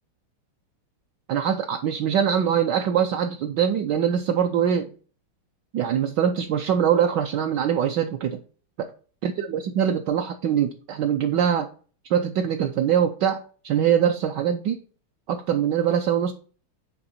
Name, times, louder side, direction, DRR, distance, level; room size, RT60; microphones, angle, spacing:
voice 1, 1.3-4.9 5.7-8.4 8.8-8.9 9.2-11.7 12.1-13.4 13.6-14.8 15.3-16.3, right 8 dB, 75° right, 5 dB, 1.1 m, -23 dB
8.8 x 3.5 x 4.2 m, 0.40 s
omnidirectional pair, 2.4 m